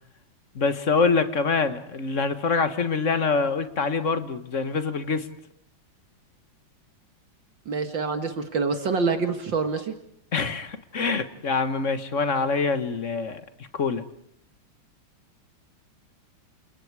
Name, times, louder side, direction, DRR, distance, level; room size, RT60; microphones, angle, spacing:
voice 1, 0.5-5.3 10.3-13.4 13.7-14.0, left 4 dB, 40° left, 1.7 m, -25 dB
voice 2, 7.7-9.9, right 4 dB, 65° right, 2.4 m, -26 dB
30.0 x 28.5 x 4.8 m
omnidirectional pair, 2.2 m